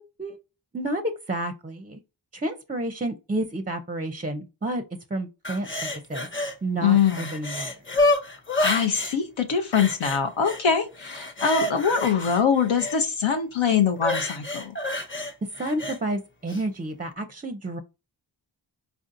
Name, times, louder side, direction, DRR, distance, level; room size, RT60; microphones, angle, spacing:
voice 1, 0.7-2.0 2.3-4.8 5.1-6.3 6.6-7.7 15.4-17.8, right 1 dB, 20° right, 0.4 m, -30 dB
sound 1, 5.4-6.6 6.9-9.2 9.7-10.6 11.0-13.0 14.0-16.0 16.5-16.6, left 2 dB, 25° left, 0.7 m, -28 dB
voice 2, 6.8-7.3 8.6-14.7, left 7 dB, 85° left, 0.6 m, -23 dB
4.3 x 2.6 x 2.5 m
cardioid pair, 50°, 46 cm